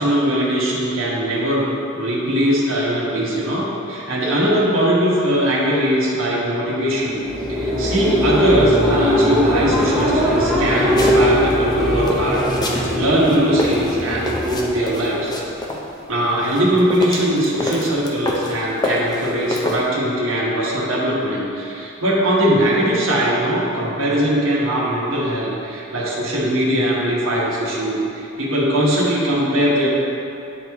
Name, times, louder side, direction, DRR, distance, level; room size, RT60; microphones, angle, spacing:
voice 1, 0.0-1.7 1.9-7.2 7.5-15.3 16.1-29.9, equal, 90° right, -6 dB, 1.2 m, -20 dB
sound 1, 7.0-15.6, equal, ahead, 0.9 m, -20 dB
sound 2, 11.0-11.6 12.0-12.8 13.2-15.8 16.4-18.5 18.8-19.8, left 2 dB, 20° left, 0.5 m, -26 dB
9.1 x 3.0 x 3.6 m, 2.7 s
head